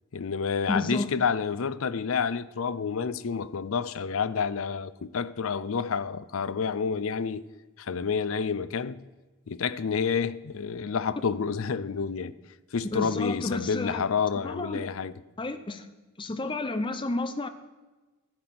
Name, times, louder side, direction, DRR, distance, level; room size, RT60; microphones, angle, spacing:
voice 1, 0.1-7.4 7.8-9.0 9.5-12.4 12.7-15.2, left 6 dB, 70° left, 0.5 m, -29 dB
voice 2, 0.7-1.1 12.9-14.0 14.4-14.9 15.4-15.9 16.2-17.5, left 2 dB, 25° left, 0.7 m, -31 dB
12.0 x 8.6 x 5.9 m
head